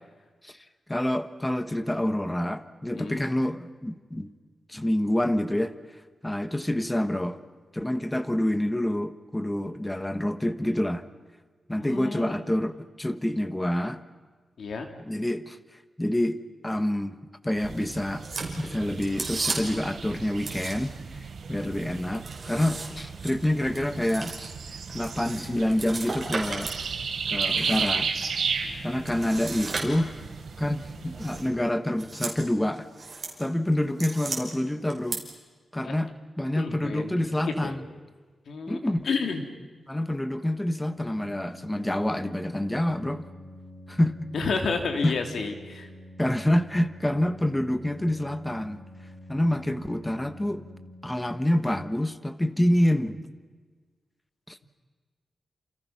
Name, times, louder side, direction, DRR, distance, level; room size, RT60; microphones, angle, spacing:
voice 1, 0.9-4.3 4.7-5.7 6.2-7.4 7.7-11.0 11.7-14.0 15.0-15.6 16.0-16.4 16.6-17.2 17.4-18.3 18.6-24.5 24.9-26.7 27.3-28.1 28.8-30.1 30.6-32.9 33.4-35.2 35.7-37.9 38.7-39.1 39.9-43.3 43.9-44.3 45.0-45.2 46.2-48.8 49.3-50.6 51.0-53.2 54.5-54.6, left 1 dB, 10° left, 10 dB, 1.3 m, -27 dB
voice 2, 11.8-12.3 14.6-14.9 28.6-28.7 35.8-36.0 36.5-37.1 37.4-37.7 38.5-38.8 39.0-39.4 44.3-45.9, left 4 dB, 80° left, 4 dB, 3.2 m, -30 dB
sound 1, 17.6-31.5, right 5 dB, 85° right, 3.5 m, -34 dB
sound 2, 18.2-19.9 20.3-21.1 21.4-26.8 27.2-28.3 29.0-30.3 31.2-31.5 31.9-32.4 32.7-33.3 33.7-34.4 34.9-35.2, right 3 dB, 35° right, 5.7 m, -36 dB
Organ, 40.8-51.6, left 1 dB, 60° left, 3.4 m, -47 dB
30.0 x 28.0 x 6.0 m, 1.4 s
wide cardioid pair, 120°, 0 cm